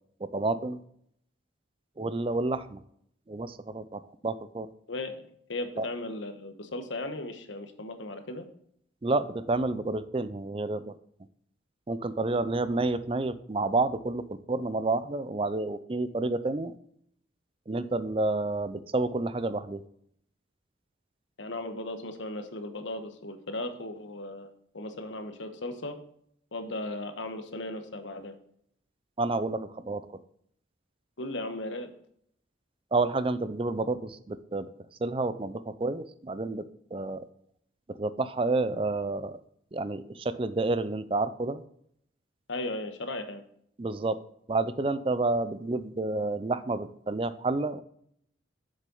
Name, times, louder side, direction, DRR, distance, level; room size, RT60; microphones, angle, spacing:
voice 1, 0.2-0.8 2.0-2.8 3.3-4.7 5.8-5.9 9.0-10.9 11.9-16.7 17.7-19.8 29.2-30.2 32.9-34.7 35.0-36.6 36.9-37.3 37.9-39.4 39.7-41.6 43.8-44.2 44.5-47.8, right 2 dB, 25° right, 14 dB, 0.4 m, -29 dB
voice 2, 4.9-8.5 21.4-26.0 26.5-28.3 31.2-31.9 42.5-43.4, left 2 dB, 75° left, 8 dB, 1.2 m, -36 dB
7.5 x 6.5 x 5.4 m, 0.67 s
head